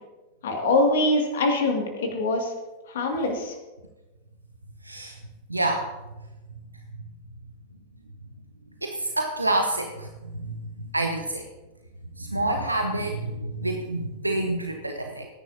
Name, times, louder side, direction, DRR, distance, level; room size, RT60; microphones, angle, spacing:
voice 1, 0.4-2.5 2.9-3.5, left 2 dB, 60° left, 2 dB, 2.4 m, -23 dB
voice 2, 4.8-5.2 5.5-5.9 8.8-11.5 12.2-15.3, right 2 dB, 85° right, 4 dB, 1.0 m, -28 dB
19.5 x 10.5 x 2.9 m, 1.1 s
figure-of-eight pair, 90°, 0 cm